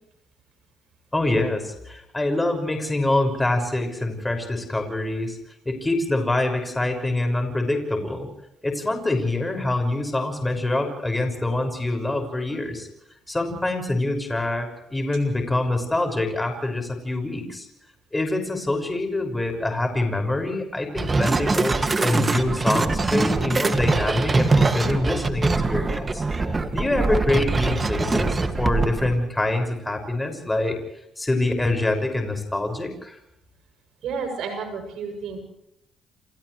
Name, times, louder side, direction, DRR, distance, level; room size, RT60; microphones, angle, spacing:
voice 1, 1.1-5.4 5.6-8.3 8.6-12.9 13.3-17.7 18.1-26.2 26.7-30.8 31.2-33.2, left 2 dB, 15° left, 4 dB, 6.2 m, -25 dB
sound 1, 21.0-29.1, right 3 dB, 30° right, 2.2 m, -23 dB
voice 2, 34.0-35.4, right 5 dB, 80° right, 5 dB, 7.5 m, -31 dB
30.0 x 28.0 x 3.3 m, 0.82 s
cardioid pair, 90°, 0 cm